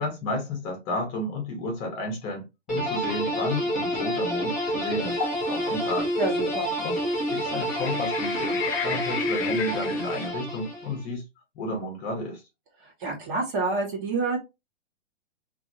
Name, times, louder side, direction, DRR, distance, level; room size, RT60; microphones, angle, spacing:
voice 1, 0.0-5.2 5.4-6.1 6.8-7.0 7.3-11.2 11.5-12.4, left 1 dB, 25° left, 0.9 m, -32 dB
sound 1, 2.7-11.0, equal, ahead, 0.4 m, -28 dB
sound 2, 5.2-5.5 6.2-6.3 7.6-10.3, left 8 dB, 50° left, 0.7 m, -33 dB
voice 2, 6.2-6.7 12.8-14.4, right 3 dB, 40° right, 1.4 m, -28 dB
2.8 x 2.7 x 2.6 m
hypercardioid pair, 150°, 38 cm